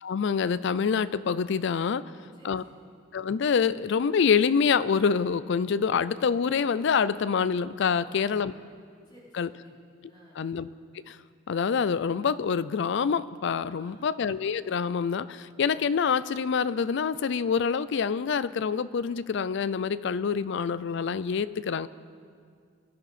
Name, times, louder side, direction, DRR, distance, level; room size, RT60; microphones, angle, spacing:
voice 1, 0.0-2.0 2.4-2.6 3.1-8.5 9.3-9.5 10.4-10.7 11.1-11.2 11.5-21.9, left 6 dB, 60° left, 17 dB, 0.4 m, -26 dB
voice 2, 2.0-2.8 7.9-8.7 9.0-9.8 10.1-10.4 13.7-14.1, equal, 20° left, -8 dB, 4.3 m, -54 dB
22.0 x 11.0 x 4.2 m, 2.1 s
head